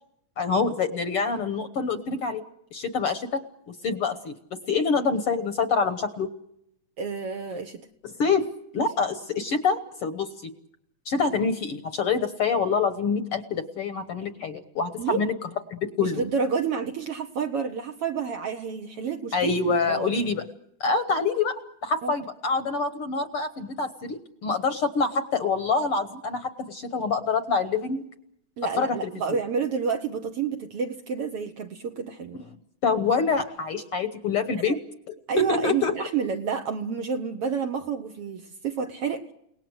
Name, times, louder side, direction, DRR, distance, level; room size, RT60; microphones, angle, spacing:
voice 1, 0.4-2.4 2.7-4.3 4.7-6.3 8.2-10.5 11.0-15.3 15.7-16.2 19.3-20.4 20.8-28.0 28.8-29.0 29.3-29.4 32.8-34.8 35.1-36.0, left 4 dB, 60° left, 10 dB, 1.7 m, -26 dB
voice 2, 7.0-7.9 15.0-15.2 16.0-19.5 19.9-20.1 22.0-22.1 28.6-32.4 34.7-34.8 35.3-39.3, right 6 dB, 60° right, 6 dB, 1.7 m, -29 dB
29.5 x 18.5 x 8.0 m, 0.77 s
omnidirectional pair, 3.6 m